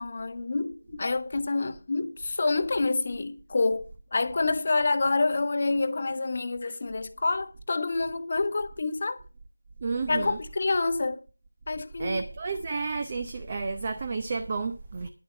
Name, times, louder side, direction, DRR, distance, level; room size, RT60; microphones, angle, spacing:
voice 1, 0.0-9.2 10.1-11.2 11.7-12.2, left 3 dB, 35° left, 0.9 m, -27 dB
voice 2, 9.8-10.4 12.0-15.1, right 4 dB, 25° right, 0.7 m, -31 dB
11.0 x 7.7 x 5.6 m
figure-of-eight pair, 170°, 0 cm